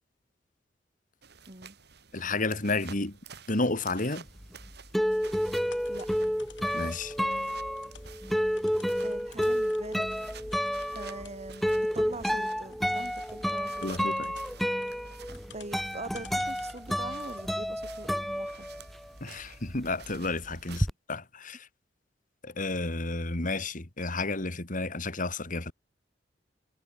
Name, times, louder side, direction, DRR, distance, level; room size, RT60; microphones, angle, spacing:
sound 1, 1.2-20.8, right 7 dB, 60° right, 4.3 m, -52 dB
voice 1, 1.5-1.8 5.9-6.1 9.0-10.1 10.9-13.9 15.5-18.8, right 2 dB, 35° right, 3.0 m, -43 dB
voice 2, 2.1-3.2 3.5-4.3 6.7-7.1 13.8-14.3 19.2-21.7 22.4-25.7, left 2 dB, 45° left, 2.6 m, -31 dB
sound 2, 4.4-19.2 19.5-20.9, equal, ahead, 0.7 m, -30 dB
sound 3, 4.5-17.0, left 6 dB, 80° left, 6.8 m, -55 dB
head